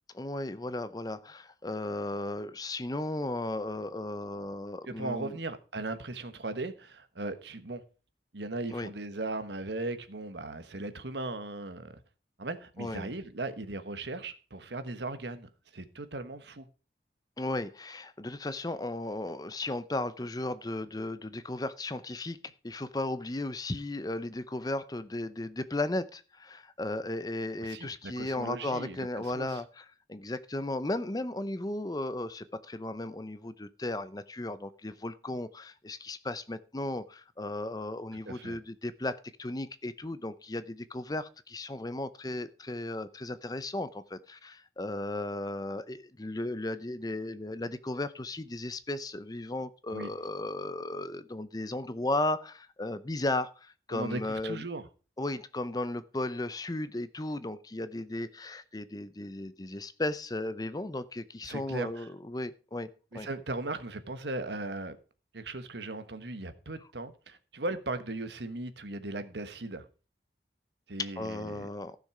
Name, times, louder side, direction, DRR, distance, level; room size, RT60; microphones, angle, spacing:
voice 1, 0.1-5.3 8.7-8.9 12.8-13.1 17.4-22.4 22.6-54.7 55.2-63.3 71.0-72.0, left 2 dB, 20° left, 0.6 m, -35 dB
voice 2, 4.9-7.8 8.3-12.0 12.4-16.7 27.6-29.6 38.2-38.6 49.9-50.1 53.9-54.9 61.4-62.1 63.1-65.0 65.3-69.8 70.9-71.7, right 2 dB, 75° right, 1.3 m, -38 dB
15.0 x 6.6 x 4.9 m
head